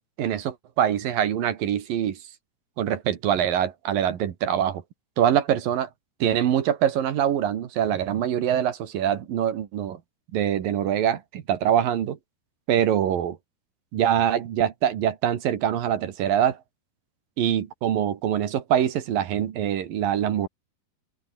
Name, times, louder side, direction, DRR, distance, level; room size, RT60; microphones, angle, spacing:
voice 1, 0.2-2.2 2.8-4.8 5.2-5.9 6.2-10.0 10.3-12.2 12.7-13.4 13.9-16.6 17.4-20.5, right 10 dB, 60° right, 3.2 m, -24 dB
open air
omnidirectional pair, 4.9 m